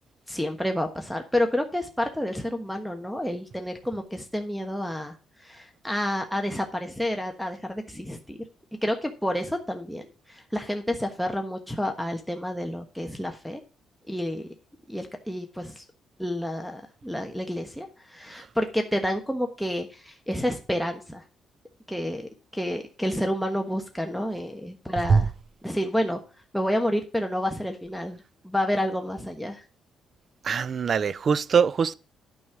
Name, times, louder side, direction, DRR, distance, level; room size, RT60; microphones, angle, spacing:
voice 1, 0.3-8.4 8.8-10.0 10.3-13.6 14.1-14.5 14.9-15.8 16.2-21.2 21.9-25.3 25.6-26.2 26.5-29.6, equal, ahead, 1.3 m, -29 dB
voice 2, 30.4-31.9, right 6 dB, 50° right, 0.5 m, -22 dB
9.5 x 5.4 x 6.1 m
cardioid pair, 90°, 0 cm